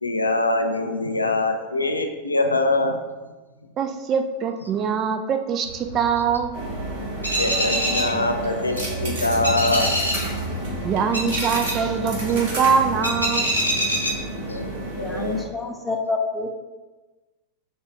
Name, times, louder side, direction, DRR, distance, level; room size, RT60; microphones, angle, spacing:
voice 1, 0.0-3.3 7.3-10.1 14.5-15.5, left 2 dB, 80° left, 5 dB, 0.4 m, -24 dB
voice 2, 3.8-6.5 10.8-13.5, right 6 dB, 30° right, 6 dB, 0.4 m, -23 dB
sound 1, 5.6-14.7, equal, 85° right, 1.0 m, -27 dB
sound 2, 6.5-15.4, right 1 dB, 50° right, 1.0 m, -31 dB
voice 3, 15.0-16.6, left 3 dB, 10° left, 1 dB, 0.6 m, -27 dB
6.5 x 2.4 x 3.3 m, 1.2 s
figure-of-eight pair, 90°, 0 cm